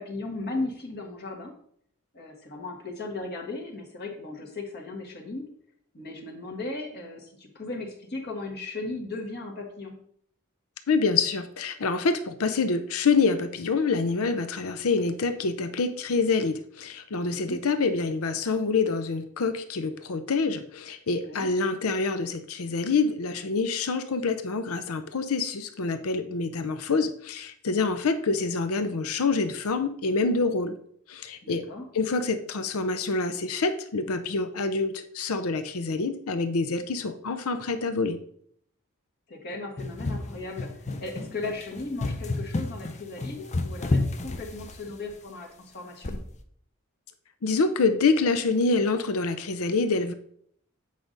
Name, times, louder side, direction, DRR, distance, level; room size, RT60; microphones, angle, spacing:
voice 1, 0.0-1.5 2.1-5.5 5.9-10.0 17.2-17.6 21.1-21.5 31.4-31.8 39.3-46.2, left 2 dB, 50° left, 0 dB, 1.5 m, -36 dB
voice 2, 10.9-30.8 31.1-31.6 31.9-38.2 47.4-50.1, left 4 dB, 75° left, 10 dB, 0.6 m, -26 dB
sound 1, 39.8-45.1 46.0-46.4, left 2 dB, 35° left, 0.6 m, -30 dB
8.3 x 5.1 x 3.9 m, 0.64 s
head